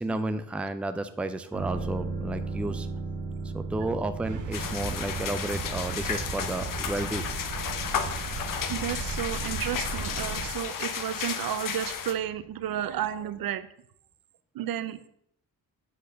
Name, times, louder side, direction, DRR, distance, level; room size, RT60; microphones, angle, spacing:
voice 1, 0.0-2.9 3.5-7.3, right 2 dB, 5° right, 10 dB, 0.4 m, -32 dB
sound 1, 1.5-13.1 13.4-13.5, right 3 dB, 35° right, 1.6 m, -38 dB
sound 2, 4.2-10.5, right 4 dB, 60° right, 1.0 m, -36 dB
sound 3, 4.5-12.1, left 7 dB, 65° left, 0.9 m, -33 dB
voice 2, 8.7-13.7 14.5-15.1, right 10 dB, 75° right, 13 dB, 0.7 m, -32 dB
7.9 x 4.2 x 6.3 m, 0.70 s
wide cardioid pair, 140°, 35 cm